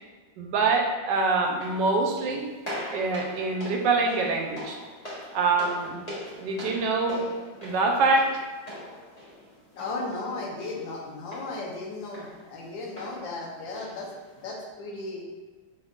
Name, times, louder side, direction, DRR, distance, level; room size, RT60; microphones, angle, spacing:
voice 1, 0.4-2.5 2.9-4.8 5.3-6.0 6.4-7.3 7.6-8.2, right 3 dB, 80° right, 2 dB, 1.2 m, -25 dB
sound 1, 1.4-14.5, equal, 25° left, 1.1 m, -43 dB
voice 2, 9.7-15.3, left 2 dB, 85° left, -1 dB, 1.5 m, -35 dB
5.3 x 3.5 x 2.4 m, 1.3 s
omnidirectional pair, 2.0 m